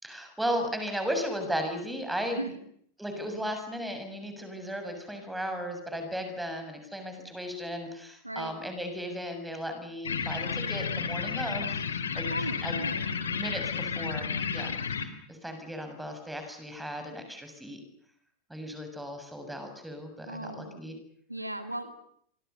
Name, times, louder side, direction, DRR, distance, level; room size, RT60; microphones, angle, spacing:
voice 1, 0.0-2.4 3.0-11.8 12.1-12.3 12.6-12.8 13.2-14.7 15.3-17.8 18.5-21.0, equal, 5° right, 6 dB, 7.0 m, -35 dB
voice 2, 2.2-2.6 8.2-8.5 12.3-13.2 20.3-20.8 21.3-21.9, right 1 dB, 85° right, 8 dB, 2.7 m, -37 dB
sound 1, 10.0-15.0, left 6 dB, 70° left, 3.5 m, -32 dB
27.5 x 25.0 x 6.9 m, 0.66 s
figure-of-eight pair, 90°, 0 cm